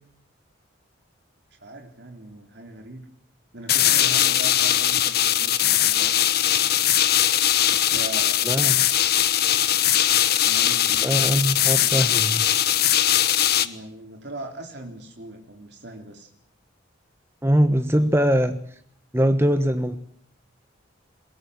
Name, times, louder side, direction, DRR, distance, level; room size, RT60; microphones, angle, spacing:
voice 1, 1.6-3.1 3.5-6.9 7.7-8.5 10.2-11.4 13.6-16.3 17.9-18.1, right 1 dB, 55° right, 2 dB, 3.7 m, -40 dB
sound 1, 3.7-13.7, left 11 dB, 50° left, 1.1 m, -20 dB
voice 2, 8.4-8.8 11.0-12.4 17.4-18.5 19.1-20.0, equal, 10° right, 8 dB, 1.2 m, -21 dB
22.5 x 21.0 x 8.2 m, 0.63 s
head